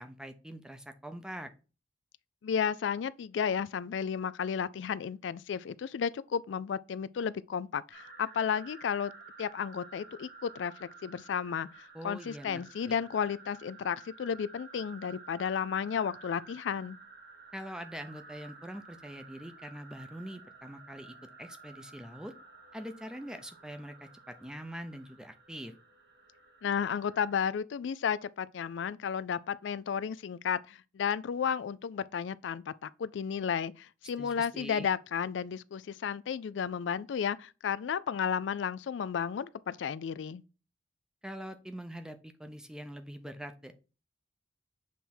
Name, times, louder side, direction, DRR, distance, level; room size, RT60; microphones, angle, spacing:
voice 1, 0.0-1.5 11.9-12.9 17.5-22.3 22.7-25.7 34.2-34.9 41.2-43.8, equal, 5° right, 0.6 m, -44 dB
voice 2, 2.4-9.1 9.4-17.0 26.6-40.4, left 7 dB, 85° left, 0.4 m, -33 dB
sound 1, 7.9-27.4, right 4 dB, 60° right, 1.3 m, -53 dB
7.5 x 3.5 x 4.3 m
head